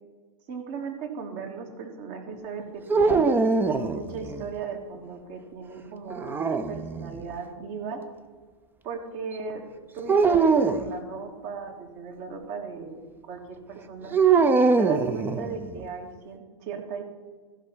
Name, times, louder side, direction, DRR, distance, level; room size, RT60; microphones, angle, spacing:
voice 1, 0.5-3.4 3.7-8.0 8.8-9.6 9.9-14.2 14.8-17.0, right 5 dB, 45° right, 4 dB, 2.0 m, -37 dB
sound 1, 2.9-4.5 6.1-7.2 10.1-10.9 14.1-15.8, right 4 dB, 10° right, 0.5 m, -22 dB
14.5 x 5.5 x 6.1 m, 1.5 s
hypercardioid pair, 115°, 16 cm